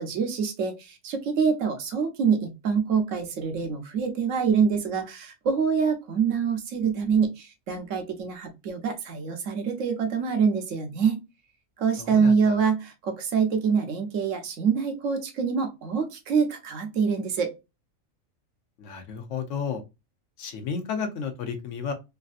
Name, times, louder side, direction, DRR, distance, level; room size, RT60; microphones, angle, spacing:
voice 1, 0.0-11.2 11.8-17.5, right 6 dB, 70° right, 7 dB, 1.1 m, -25 dB
voice 2, 12.0-12.6 18.8-19.8 20.4-21.9, left 6 dB, 70° left, 6 dB, 1.0 m, -32 dB
3.3 x 2.6 x 2.3 m, 0.25 s
omnidirectional pair, 1.4 m